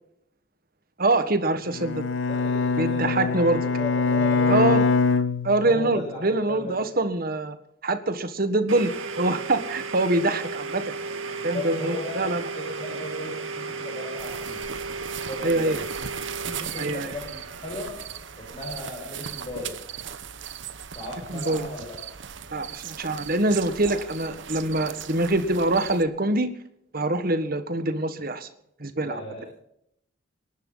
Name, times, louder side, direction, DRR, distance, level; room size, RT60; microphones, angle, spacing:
voice 1, 1.0-2.1 2.8-3.6 4.5-4.8 5.4-7.6 7.8-8.9 9.2-10.9 11.4-12.4 15.4-15.8 16.8-17.1 21.3-21.7 22.5-26.5 26.9-28.5 28.8-29.2, right 2 dB, 45° right, 9 dB, 1.6 m, -24 dB
Bowed string instrument, 1.7-6.1, left 4 dB, 70° left, 0.9 m, -24 dB
voice 2, 2.4-4.9 5.6-6.8 11.4-12.1 12.5-14.7 15.3-15.8 16.4-17.3 17.6-17.9 18.4-19.7 20.9-22.0 23.8-24.0 29.0-29.5, left 1 dB, 30° left, -4 dB, 6.5 m, -35 dB
Domestic sounds home sounds, 8.7-20.3, right 4 dB, 90° right, 1.8 m, -35 dB
sound 1, 14.2-26.0, right 8 dB, 65° right, 0.9 m, -38 dB
25.5 x 11.5 x 4.0 m, 0.74 s
head